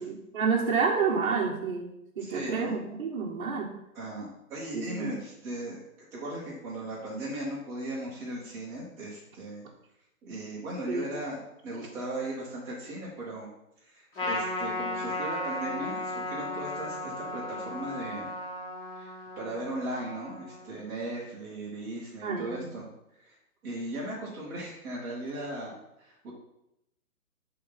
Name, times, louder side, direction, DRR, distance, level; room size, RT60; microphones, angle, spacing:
voice 1, 0.0-3.7 4.7-5.1 10.9-11.1 11.8-11.9 22.2-22.6, right 5 dB, 35° right, -4 dB, 1.1 m, -29 dB
voice 2, 2.2-2.8 3.9-5.8 6.1-9.6 10.2-13.5 13.9-18.3 19.0-22.9 23.2-23.3 23.6-25.7 26.0-26.3, right 1 dB, 5° right, -8 dB, 1.0 m, -37 dB
Trumpet, 14.1-20.8, left 1 dB, 40° left, 2.9 m, -35 dB
8.2 x 3.8 x 5.6 m, 0.84 s
hypercardioid pair, 170°, 45 cm